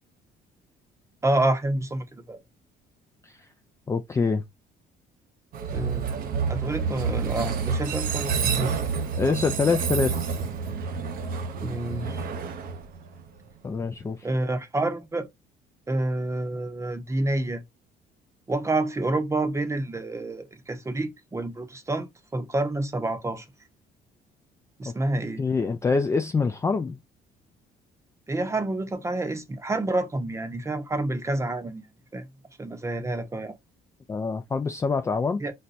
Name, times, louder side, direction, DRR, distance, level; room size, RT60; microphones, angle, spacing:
voice 1, 1.2-2.4 5.7-6.1 6.5-8.8 11.6-12.3 14.2-15.3 15.9-17.6 18.5-22.1 22.3-23.4 24.8-25.4 28.3-31.8 32.1-32.3 32.6-33.6 35.4-35.5, right 2 dB, 15° right, 0.8 m, -28 dB
voice 2, 3.9-4.4 9.1-10.1 13.6-14.3 24.9-25.0 25.4-27.0 34.1-35.4, left 4 dB, 15° left, 0.3 m, -25 dB
Train, 5.5-13.5, right 5 dB, 60° right, 0.7 m, -29 dB
4.1 x 2.2 x 2.5 m
cardioid pair, 110°, 17 cm